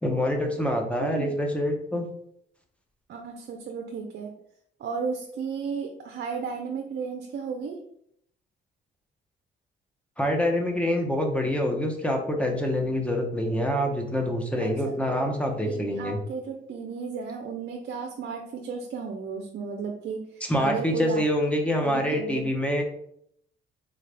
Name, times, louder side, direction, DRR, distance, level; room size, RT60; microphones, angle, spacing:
voice 1, 0.0-2.1 10.2-16.2 20.5-22.8, equal, 5° left, 2 dB, 0.7 m, -26 dB
voice 2, 1.0-1.3 3.1-4.3 4.8-7.8 14.6-15.3 15.7-21.2 21.8-22.5, right 5 dB, 60° right, 3 dB, 0.5 m, -34 dB
3.8 x 2.4 x 3.3 m, 0.70 s
cardioid pair, 90°, 20 cm